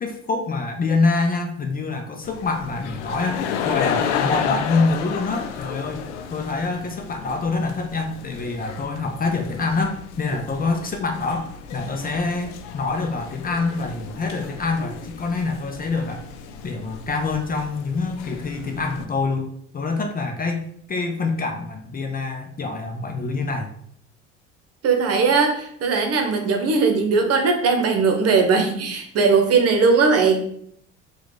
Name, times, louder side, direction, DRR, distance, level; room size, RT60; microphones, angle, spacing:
voice 1, 0.0-6.0 6.3-16.2 16.6-23.7, left 3 dB, 25° left, 4 dB, 0.7 m, -26 dB
sound 1, 2.2-19.1, left 7 dB, 75° left, 0.6 m, -32 dB
voice 2, 24.8-30.4, right 4 dB, 45° right, 4 dB, 1.1 m, -19 dB
4.6 x 2.5 x 3.9 m, 0.66 s
hypercardioid pair, 75°, 35 cm